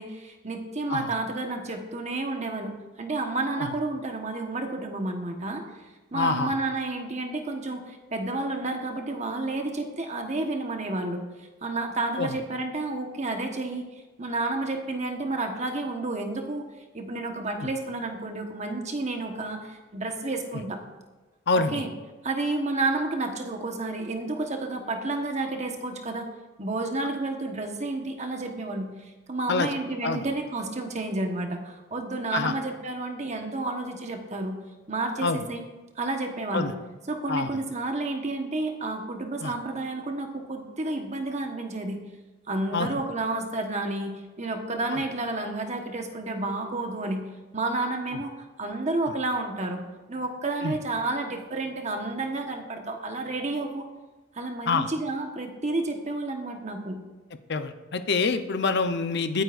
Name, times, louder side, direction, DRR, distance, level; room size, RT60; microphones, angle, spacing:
voice 1, 0.0-5.6 6.1-11.2 11.6-13.8 14.2-16.6 16.9-20.8 21.5-21.9 22.2-26.3 26.6-34.6 34.9-35.6 36.0-36.8 37.1-42.0 42.5-47.2 47.5-49.8 50.1-53.8 54.3-57.0, right 2 dB, 35° right, 4 dB, 1.3 m, -30 dB
voice 2, 6.1-6.5 12.2-12.4 21.5-21.8 29.5-29.7 30.0-30.2 32.3-32.5 35.2-35.4 36.5-36.7 37.3-37.5 39.4-39.5 42.7-42.9 44.9-45.0 48.1-48.2 50.6-50.8 54.7-54.9 57.5-59.4, left 4 dB, 60° left, 9 dB, 0.8 m, -26 dB
22.0 x 9.5 x 2.6 m, 1.2 s
head